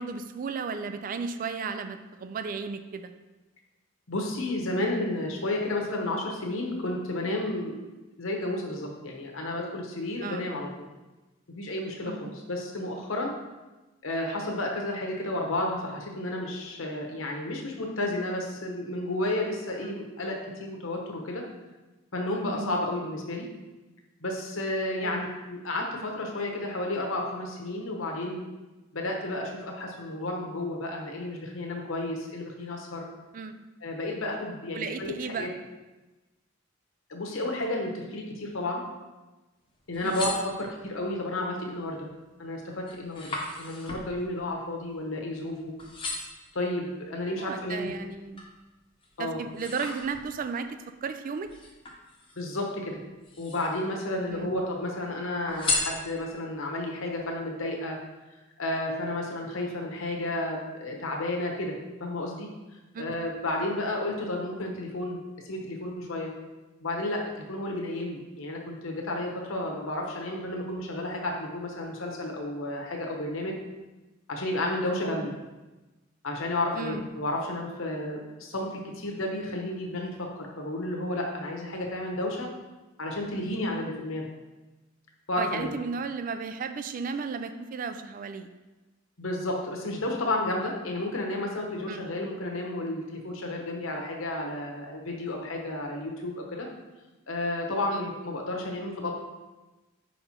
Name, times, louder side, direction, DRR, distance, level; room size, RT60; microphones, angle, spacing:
voice 1, 0.0-3.1 10.2-10.5 12.1-12.3 19.8-20.0 22.5-22.8 25.0-25.2 33.3-33.6 34.7-35.5 40.0-40.2 47.4-48.5 49.2-51.5 54.3-54.6 62.9-63.0 75.0-75.4 76.7-77.0 85.4-88.5 91.9-92.1 97.9-98.1, right 5 dB, 40° right, 9 dB, 0.3 m, -34 dB
voice 2, 4.1-7.8 8.2-10.7 11.5-13.3 14.0-21.4 22.1-23.4 24.2-28.4 28.9-33.0 33.8-35.5 37.1-38.8 39.9-42.1 42.4-45.7 46.5-47.9 49.2-49.4 52.4-53.0 53.4-58.0 58.6-62.5 63.0-65.2 65.4-66.3 66.8-67.2 67.5-73.6 74.3-75.3 76.2-80.1 80.4-82.5 83.0-84.3 85.3-85.7 89.2-96.7 97.3-99.1, left 1 dB, 70° left, 0 dB, 1.0 m, -32 dB
sound 1, 39.8-41.1 41.6-42.0 42.4-45.5 45.8-46.5 47.1-48.6 49.0-50.6 51.5-52.6 53.1-53.9 54.3-55.0 55.5-56.5 57.0-57.1, left 2 dB, 25° left, 0.9 m, -36 dB
5.3 x 4.3 x 4.3 m, 1.1 s
head